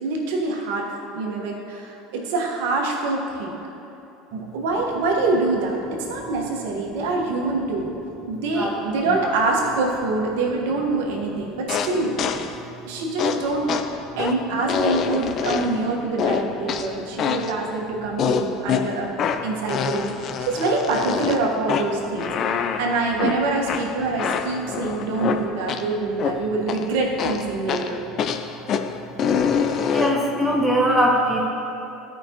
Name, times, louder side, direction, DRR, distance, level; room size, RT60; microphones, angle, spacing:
voice 1, 0.0-3.6 4.3-7.9 8.3-12.1 12.9-13.7 14.2-19.1 19.4-20.1 20.4-22.3 22.8-28.0, right 3 dB, 75° right, -1 dB, 1.3 m, -25 dB
sound 1, 11.7-12.6 13.2-15.9 16.2-17.6 18.2-25.9 26.2-26.9 27.2-30.3, left 6 dB, 50° left, 0.5 m, -26 dB
voice 2, 29.9-31.5, equal, 5° right, -3 dB, 1.2 m, -22 dB
13.0 x 5.2 x 2.9 m, 3.0 s
hypercardioid pair, 85°, 0 cm